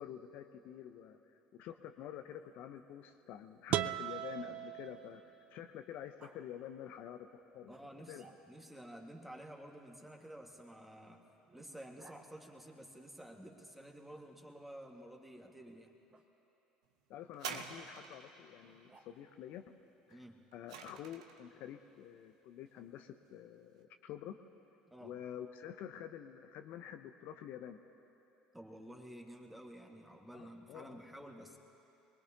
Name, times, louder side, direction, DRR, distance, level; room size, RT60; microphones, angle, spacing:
voice 1, 0.0-5.2 5.5-7.7 8.1-8.3 17.1-19.8 20.1-20.2 20.5-24.4 25.0-27.8 30.3-31.0, left 10 dB, 60° left, 7 dB, 0.6 m, -48 dB
Growling, 2.1-5.5 6.2-6.4 7.7-8.8 10.1-12.2 14.1-14.8 16.1-16.3 18.6-19.4, right 3 dB, 30° right, 1.4 m, -66 dB
sound 1, 3.7-5.6, right 12 dB, 50° right, 0.4 m, -38 dB
voice 2, 7.7-11.2 11.5-15.9 20.1-20.4 24.9-25.2 28.5-31.6, right 1 dB, 5° right, 2 dB, 1.8 m, -52 dB
sound 2, 17.3-18.4 20.1-21.5 22.3-22.4, right 6 dB, 75° right, 0.8 m, -46 dB
23.0 x 20.5 x 2.9 m, 2.9 s
hypercardioid pair, 65°, 3 cm